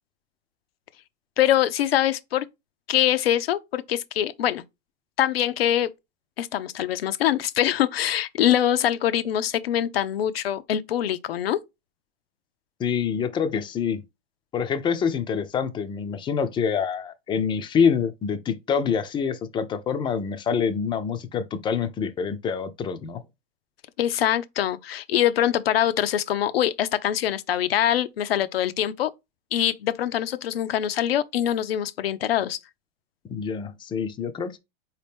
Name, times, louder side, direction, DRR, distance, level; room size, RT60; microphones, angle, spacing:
voice 1, 1.4-2.5 2.9-4.6 5.2-5.9 6.4-11.6 24.0-29.1 29.5-32.6, left 11 dB, 85° left, 0.6 m, -24 dB
voice 2, 12.8-14.0 14.5-23.2 33.2-34.6, left 6 dB, 15° left, 0.4 m, -26 dB
4.2 x 2.9 x 3.4 m
hypercardioid pair, 125°, 29 cm